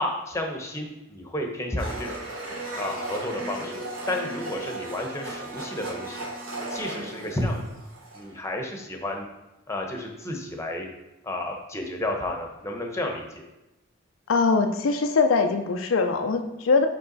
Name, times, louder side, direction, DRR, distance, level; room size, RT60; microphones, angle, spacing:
voice 1, 0.0-2.2 2.8-3.8 4.1-6.3 6.7-7.7 8.1-9.2 9.7-10.9 11.2-13.3, left 1 dB, 15° left, 2 dB, 0.9 m, -31 dB
Domestic sounds home sounds, 1.8-8.4, right 2 dB, 75° right, 1.5 m, -35 dB
voice 2, 14.3-16.9, left 4 dB, 75° left, 6 dB, 0.5 m, -22 dB
5.4 x 4.7 x 4.0 m, 0.97 s
head